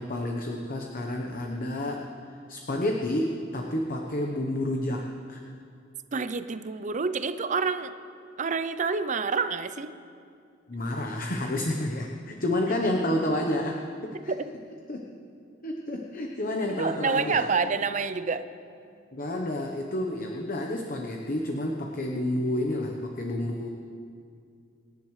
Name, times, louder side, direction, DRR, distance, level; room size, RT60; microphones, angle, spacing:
voice 1, 0.0-2.0 2.5-5.0 5.3-5.4 10.7-14.3 14.9-15.0 15.6-17.5 19.1-23.7, left 1 dB, 50° left, 1 dB, 1.0 m, -30 dB
voice 2, 6.1-7.9 8.4-9.9 14.3-14.4 16.8-18.5, right 5 dB, 40° right, 11 dB, 0.5 m, -28 dB
26.0 x 10.5 x 3.2 m, 2.4 s
head